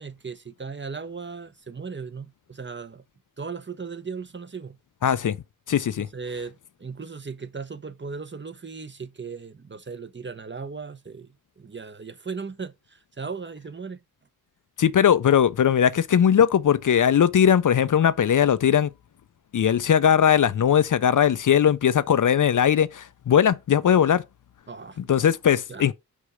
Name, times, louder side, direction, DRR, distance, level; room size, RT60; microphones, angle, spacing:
voice 1, 0.0-3.0 3.4-4.8 6.0-14.0 24.7-25.0 25.7-25.9, right 5 dB, 30° right, 0.8 m, -37 dB
voice 2, 5.0-5.4 5.7-6.1 14.8-18.9 19.5-24.2 25.1-25.9, left 8 dB, 60° left, 0.5 m, -19 dB
5.4 x 4.9 x 4.9 m
cardioid pair, 45°, 36 cm